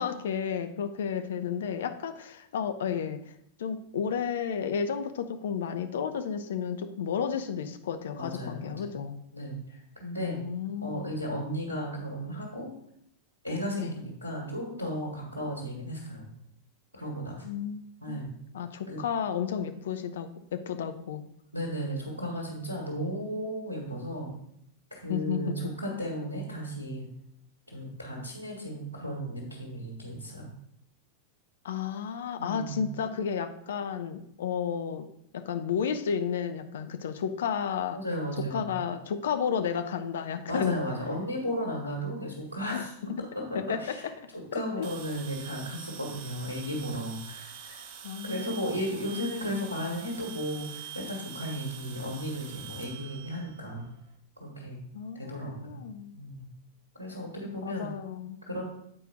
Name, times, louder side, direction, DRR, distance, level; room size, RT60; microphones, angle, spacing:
voice 1, 0.0-3.3 3.6-9.2 10.2-11.0 13.8-14.0 17.4-18.2 18.5-21.2 25.1-25.6 31.6-35.1 35.3-38.0 38.4-40.8 42.7-42.8 43.5-44.0 44.5-44.9 48.0-48.6 54.9-56.2 57.6-58.4, left 7 dB, 60° left, 9 dB, 0.7 m, -32 dB
voice 2, 8.1-9.0 9.3-10.4 10.8-12.7 13.4-16.3 16.9-17.5 18.0-18.3 18.9-19.0 21.5-24.3 24.9-27.1 27.7-30.5 32.4-32.8 37.9-38.7 40.5-42.9 43.4-44.1 44.5-47.8 48.2-53.9 54.4-54.8 55.1-55.8 56.1-56.5 57.0-57.9 58.4-58.6, equal, 90° right, -3 dB, 1.8 m, -35 dB
sound 1, 44.8-54.1, right 8 dB, 45° right, 0.8 m, -44 dB
8.7 x 4.6 x 4.9 m, 0.72 s
figure-of-eight pair, 90°, 0 cm